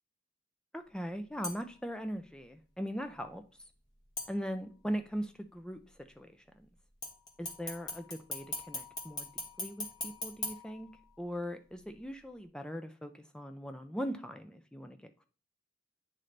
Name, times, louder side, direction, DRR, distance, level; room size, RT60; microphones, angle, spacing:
voice 1, 0.7-3.4 4.3-6.7 7.4-9.3 9.6-10.9 11.2-15.3, equal, 5° left, 7 dB, 0.4 m, -40 dB
sound 1, 1.4-1.9 4.2-4.9 7.0-11.4 11.8-11.9, left 1 dB, 20° left, 1.1 m, -42 dB
9.1 x 3.9 x 3.2 m, 0.38 s
head